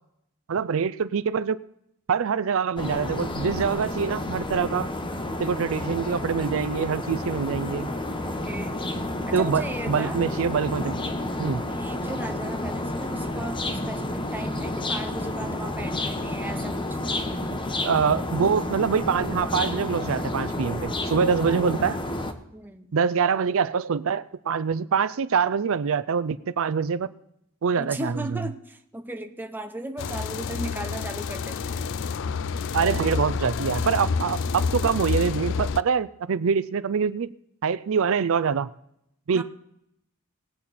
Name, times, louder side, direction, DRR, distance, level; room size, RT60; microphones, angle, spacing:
voice 1, 0.5-1.6 2.1-4.9 5.4-7.9 9.3-11.0 11.4-11.6 17.8-22.0 22.9-27.1 27.6-28.4 32.7-37.3 37.6-38.7 39.3-39.4, right 6 dB, 65° right, 0.4 m, -25 dB
sound 1, 2.8-22.3, left 1 dB, 20° left, 0.9 m, -30 dB
voice 2, 8.2-8.8 9.3-10.2 11.7-17.0 21.4-21.6 22.5-22.9 27.8-31.8 32.8-33.1 39.3-39.4, right 1 dB, 10° right, 0.8 m, -37 dB
sound 2, 30.0-35.8, left 5 dB, 55° left, 0.4 m, -28 dB
19.5 x 8.5 x 4.2 m
head